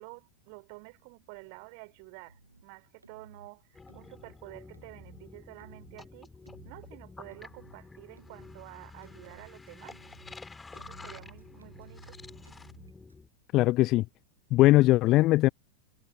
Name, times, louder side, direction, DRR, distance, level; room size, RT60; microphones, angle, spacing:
voice 1, 0.0-6.3 6.6-10.0 10.7-12.2, right 35 dB, 45° right, 4.0 m, -50 dB
sound 1, 2.3-2.6 3.0-3.5 3.9-4.4 4.7-5.2 5.6-6.1 6.5-6.9 7.3-7.8 8.2-8.6 9.0-10.4 10.7-13.1, right 3 dB, 80° right, 4.3 m, -55 dB
sound 2, 3.7-13.3, left 3 dB, 10° left, 4.0 m, -49 dB
voice 2, 13.5-14.1 14.5-15.5, left 17 dB, 35° left, 0.4 m, -20 dB
figure-of-eight pair, 90°, 0 cm